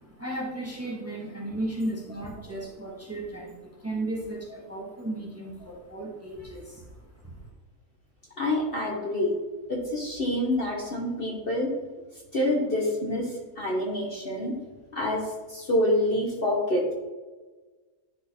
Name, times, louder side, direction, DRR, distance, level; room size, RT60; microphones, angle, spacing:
voice 1, 0.0-6.9 7.2-7.4, right 1 dB, 10° right, -2 dB, 1.4 m, -35 dB
voice 2, 8.4-9.4 9.7-11.7 12.3-14.6 14.9-16.9, left 1 dB, 40° left, -2 dB, 1.2 m, -27 dB
10.0 x 3.8 x 4.4 m, 1.3 s
omnidirectional pair, 1.6 m